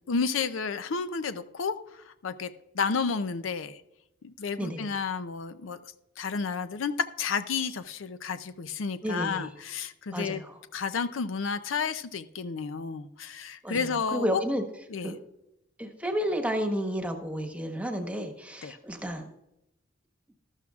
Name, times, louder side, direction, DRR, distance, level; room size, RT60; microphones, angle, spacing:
voice 1, 0.1-3.8 4.2-5.8 6.2-10.4 10.7-14.4 14.9-15.1 18.6-18.8, left 5 dB, 70° left, 12 dB, 0.5 m, -31 dB
voice 2, 4.6-4.9 9.0-9.5 10.1-10.6 13.6-14.6 15.0-15.2 15.8-19.3, equal, 5° right, 4 dB, 1.2 m, -31 dB
13.0 x 12.0 x 2.4 m, 0.86 s
head